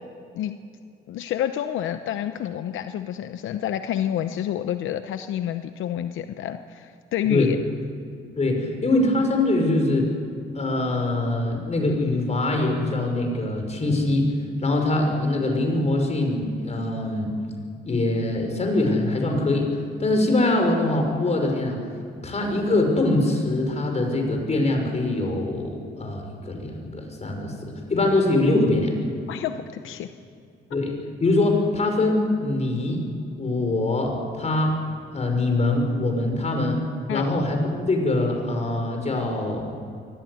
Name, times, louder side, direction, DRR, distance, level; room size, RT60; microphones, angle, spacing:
voice 1, 1.1-7.6 29.3-30.1 37.1-37.3, left 11 dB, 80° left, 9 dB, 0.8 m, -28 dB
voice 2, 7.2-7.5 8.4-10.1 10.5-14.3 14.6-17.3 17.8-19.7 20.0-21.8 22.2-28.9 30.7-30.9 31.2-33.1 33.4-34.8 35.1-36.8 37.1-39.7, left 2 dB, 35° left, 3 dB, 5.7 m, -23 dB
23.5 x 15.0 x 9.5 m, 2.5 s
cardioid pair, 90°, 20 cm